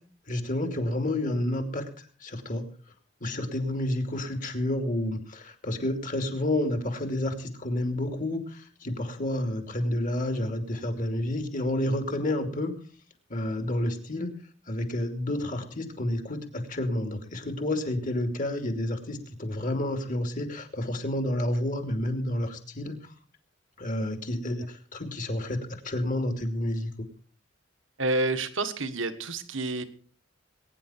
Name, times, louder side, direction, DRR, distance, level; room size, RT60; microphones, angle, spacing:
voice 1, 0.3-2.6 3.2-12.7 13.3-14.4 14.7-23.0 23.8-26.9, left 1 dB, 40° left, 6 dB, 2.7 m, -30 dB
voice 2, 28.0-29.8, right 2 dB, 70° right, 9 dB, 1.5 m, -29 dB
22.0 x 10.0 x 4.4 m, 0.42 s
head